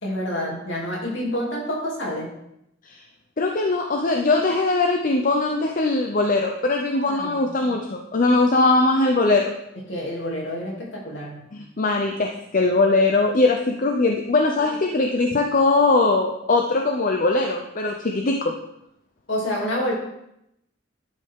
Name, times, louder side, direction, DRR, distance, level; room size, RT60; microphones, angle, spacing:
voice 1, 0.0-2.3 6.9-7.4 9.9-11.5 19.3-19.9, equal, 65° left, -4 dB, 2.8 m, -28 dB
voice 2, 3.4-9.5 11.5-18.5, left 3 dB, 40° left, 2 dB, 0.6 m, -21 dB
11.5 x 5.4 x 3.6 m, 0.82 s
head